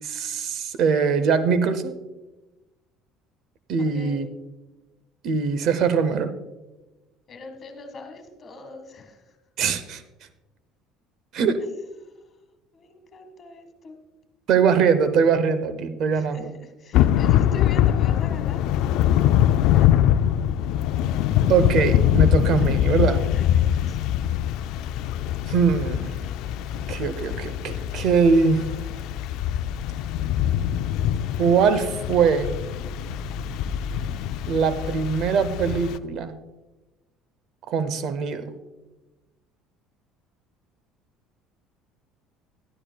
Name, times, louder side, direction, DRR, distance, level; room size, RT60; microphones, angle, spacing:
voice 1, 0.0-1.9 3.7-4.3 5.2-6.3 9.6-10.0 11.3-11.6 14.5-16.5 21.5-23.2 25.5-26.1 26.9-28.6 31.4-32.5 34.5-36.3 37.7-38.5, right 6 dB, 60° right, 12 dB, 0.8 m, -22 dB
voice 2, 3.8-4.2 7.3-9.4 12.0-12.4 12.7-14.0 16.1-18.7 21.4-21.9 23.2-24.1, left 3 dB, 35° left, 5 dB, 1.8 m, -42 dB
Thunder / Rain, 16.9-36.0, left 11 dB, 70° left, 0.4 m, -23 dB
12.0 x 12.0 x 2.3 m, 1.1 s
cardioid pair, 110°, 0 cm